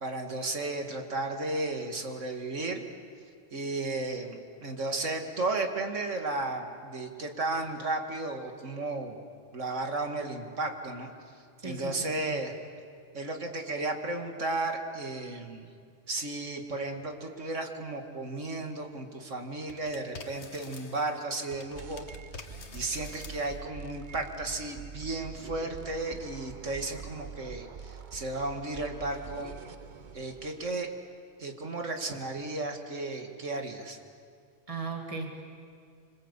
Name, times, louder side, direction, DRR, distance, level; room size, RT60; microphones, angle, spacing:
voice 1, 0.0-2.8 3.5-9.2 9.5-11.1 11.6-12.5 13.1-15.7 16.1-22.0 22.7-29.5 30.1-30.9 31.4-34.0, right 2 dB, 80° right, 4 dB, 2.6 m, -34 dB
voice 2, 11.6-12.4 25.8-26.2 34.7-35.4, right 4 dB, 30° right, 2 dB, 2.4 m, -38 dB
sound 1, 19.7-21.2 21.5-23.7, left 4 dB, 65° left, 1.7 m, -47 dB
sound 2, 21.8-30.8, right 6 dB, 45° right, 1.0 m, -45 dB
26.5 x 26.0 x 8.3 m, 2.1 s
omnidirectional pair, 1.2 m